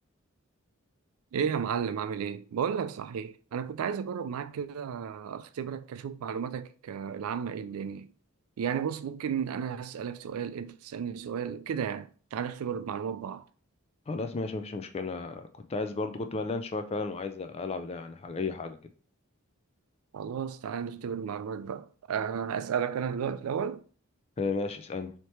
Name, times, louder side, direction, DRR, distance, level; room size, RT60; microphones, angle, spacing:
voice 1, 1.3-8.1 8.6-13.4 20.1-23.8, right 7 dB, 85° right, 0.3 m, -33 dB
voice 2, 14.1-18.8 24.4-25.1, left 3 dB, 30° left, 0.3 m, -33 dB
3.2 x 2.8 x 4.4 m
head